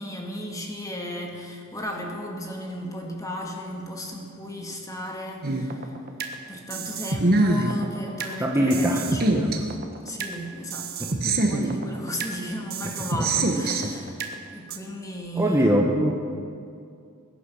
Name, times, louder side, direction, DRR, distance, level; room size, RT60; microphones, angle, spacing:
voice 1, 0.0-5.9 6.5-9.5 10.0-14.2 14.5-15.9, equal, 15° left, 0 dB, 2.1 m, -35 dB
sound 1, 5.4-6.3 6.7-8.3 8.7-10.3 10.7-12.3 12.7-14.3 14.7-14.8, right 2 dB, 45° right, 1.4 m, -25 dB
voice 2, 8.4-9.0 9.3-9.6 11.2-11.5 15.4-16.1, equal, 10° right, -1 dB, 1.2 m, -22 dB
21.5 x 10.0 x 6.4 m, 2.3 s
head